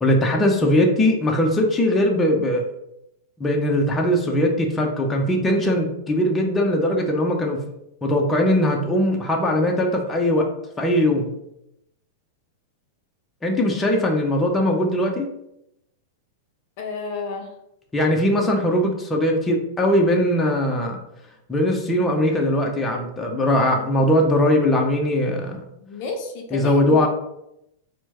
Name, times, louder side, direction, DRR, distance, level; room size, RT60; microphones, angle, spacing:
voice 1, 0.0-2.7 3.4-7.6 8.0-10.5 10.8-11.3 13.4-15.3 17.9-21.0 21.5-25.7 26.5-27.1, left 1 dB, 15° left, 1 dB, 0.7 m, -20 dB
voice 2, 16.8-17.5 25.8-27.1, left 4 dB, 55° left, 3 dB, 0.6 m, -31 dB
4.3 x 2.2 x 2.9 m, 0.82 s
hypercardioid pair, 105°, 0 cm